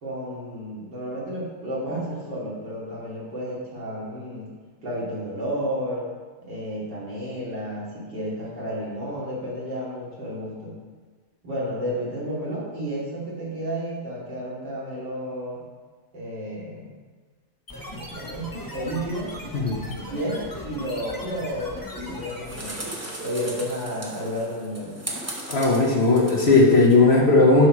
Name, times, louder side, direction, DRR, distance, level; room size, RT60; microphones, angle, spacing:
voice 1, 0.0-4.5 4.8-6.1 6.4-10.8 11.4-15.6 16.1-16.9 17.8-19.3 20.1-22.9 23.2-25.0, equal, 90° right, -7 dB, 3.3 m, -32 dB
sound 1, 17.7-22.8, left 1 dB, 15° left, 1.0 m, -38 dB
sound 2, 22.0-26.9, right 1 dB, 10° right, 0.8 m, -37 dB
voice 2, 25.5-27.7, left 3 dB, 40° left, -2 dB, 1.3 m, -17 dB
11.5 x 4.6 x 4.8 m, 1.5 s
omnidirectional pair, 1.9 m